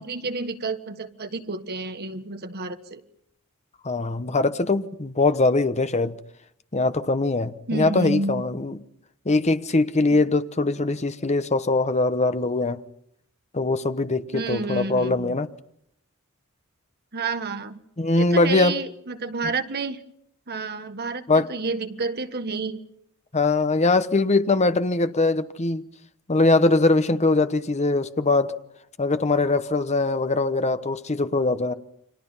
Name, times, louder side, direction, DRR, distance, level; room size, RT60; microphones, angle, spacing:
voice 1, 0.0-3.0 7.7-8.4 14.3-15.4 17.1-17.8 18.1-20.0 20.5-22.8, right 3 dB, 45° right, 1.5 m, -30 dB
voice 2, 3.8-6.2 6.7-8.8 9.2-12.8 13.5-15.5 18.0-18.7 21.3-21.5 23.3-25.8 26.3-28.5 29.0-31.7, left 3 dB, 30° left, 1.0 m, -22 dB
30.0 x 25.0 x 5.7 m
head